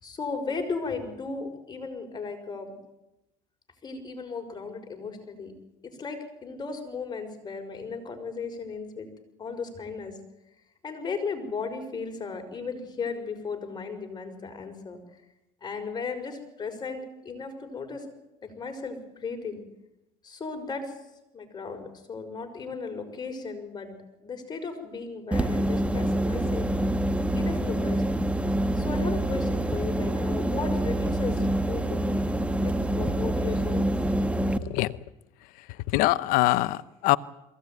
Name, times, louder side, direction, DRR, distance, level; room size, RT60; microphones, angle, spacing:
voice 1, 0.0-2.8 3.8-5.5 5.8-9.1 9.4-10.2 10.8-15.0 15.6-18.1 18.4-19.6 20.2-21.0 21.3-24.0 24.2-26.7 27.3-28.0 28.7-32.3 32.6-33.9, left 4 dB, 30° left, 5 dB, 5.9 m, -35 dB
sound 1, 25.3-34.6, right 1 dB, 10° right, 1.4 m, -26 dB
voice 2, 34.6-34.9 35.9-37.2, left 18 dB, 75° left, 17 dB, 0.9 m, -23 dB
22.5 x 17.0 x 9.3 m, 0.92 s
supercardioid pair, 100°, 15 cm